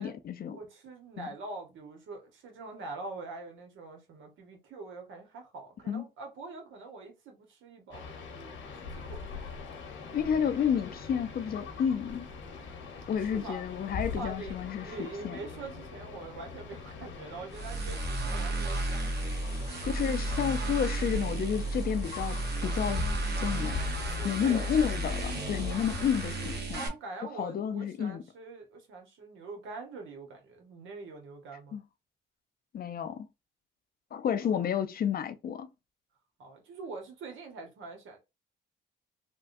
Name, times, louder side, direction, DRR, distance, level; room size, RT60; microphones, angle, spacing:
voice 1, 0.0-0.6 1.2-1.3 5.9-6.0 10.1-12.3 13.1-14.9 15.2-15.4 19.8-22.4 22.6-23.0 23.4-23.8 24.2-26.8 27.4-28.2 31.7-31.8 32.7-33.3 34.1-35.7, left 8 dB, 50° left, 0.5 m, -30 dB
voice 2, 0.5-9.4 13.2-13.6 14.1-19.2 24.1-24.7 26.7-31.8 34.4-34.7 36.4-38.2, right 3 dB, 75° right, 1.2 m, -44 dB
sound 1, 7.9-26.6, left 4 dB, 80° left, 1.1 m, -42 dB
sound 2, 17.5-26.9, right 2 dB, 55° right, 1.1 m, -33 dB
3.4 x 2.2 x 2.6 m
cardioid pair, 90°, 20 cm